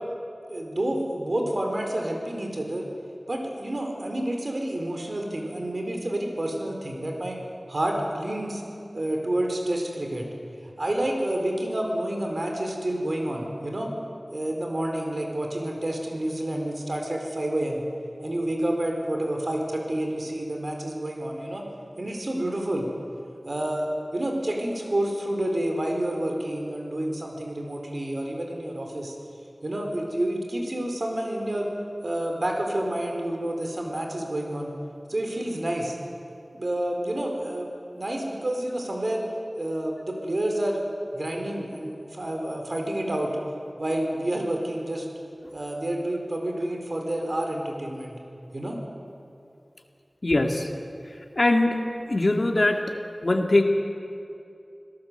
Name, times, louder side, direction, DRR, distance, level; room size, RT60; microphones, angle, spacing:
voice 1, 0.5-2.9 3.3-7.4 7.7-8.6 8.9-10.3 10.6-13.9 14.3-17.8 18.2-21.6 22.0-22.9 23.4-29.1 29.6-31.7 32.0-34.7 35.1-36.0 36.5-37.7 37.9-39.3 39.6-40.8 41.1-43.4 43.8-45.1 45.5-48.1 48.5-48.8, right 1 dB, 65° right, 2 dB, 4.4 m, -29 dB
voice 2, 50.2-50.7 51.4-51.8 52.1-52.8 53.2-53.6, left 2 dB, 60° left, 4 dB, 2.1 m, -21 dB
26.0 x 17.0 x 8.0 m, 2.6 s
wide cardioid pair, 50°, 0 cm